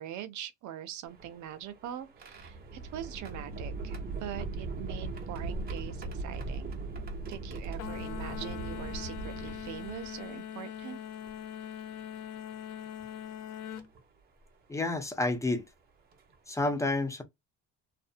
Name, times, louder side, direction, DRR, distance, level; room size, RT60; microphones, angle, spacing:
voice 1, 0.0-6.8 7.3-11.0, right 11 dB, 75° right, 0.6 m, -42 dB
sound 1, 1.1-10.4 11.3-11.4 12.8-13.0 13.8-14.0 15.6-15.7 16.1-16.3, right 3 dB, 30° right, 0.8 m, -39 dB
sound 2, 7.8-13.9, left 9 dB, 60° left, 0.5 m, -41 dB
voice 2, 14.7-15.6 16.5-17.2, left 2 dB, 10° left, 0.5 m, -29 dB
2.6 x 2.1 x 2.5 m
cardioid pair, 130°, 30 cm